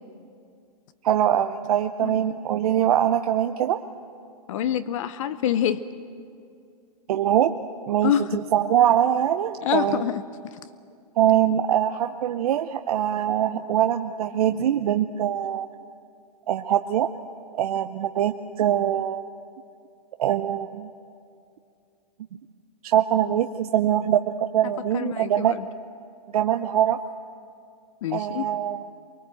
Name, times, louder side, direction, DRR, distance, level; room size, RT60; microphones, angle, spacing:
voice 1, 1.0-3.8 7.1-7.6 7.9-8.1 8.5-10.0 11.2-15.7 16.5-17.1 17.6-19.2 20.2-20.9 22.8-25.6 26.3-27.0 28.1-28.8, right 10 dB, 65° right, 7 dB, 0.8 m, -23 dB
voice 2, 4.5-5.8 8.0-8.4 9.6-10.2 10.5-10.6 24.6-25.7 28.0-28.5, left 10 dB, 50° left, 14 dB, 0.8 m, -26 dB
23.5 x 21.0 x 7.8 m, 2.4 s
hypercardioid pair, 145°, 21 cm